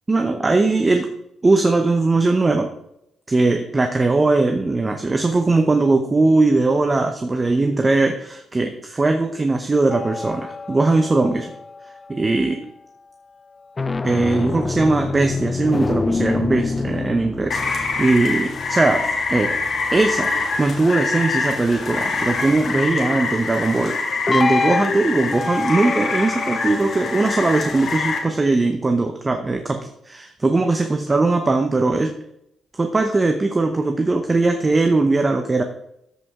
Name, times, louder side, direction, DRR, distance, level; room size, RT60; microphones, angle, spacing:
voice 1, 0.1-1.1 1.4-2.7 3.3-11.5 12.1-12.6 14.0-17.6 18.0-19.0 19.3-19.6 19.9-20.3 20.6-24.0 24.3-32.1 32.8-35.6, right 3 dB, 25° right, 5 dB, 0.8 m, -19 dB
sound 1, 9.9-12.5 13.6-20.4 24.3-28.5, left 4 dB, 25° left, 0.4 m, -27 dB
Rain, 17.5-28.2, left 4 dB, 55° left, 2.1 m, -25 dB
13.5 x 5.1 x 3.7 m, 0.77 s
cardioid pair, 90°, 0 cm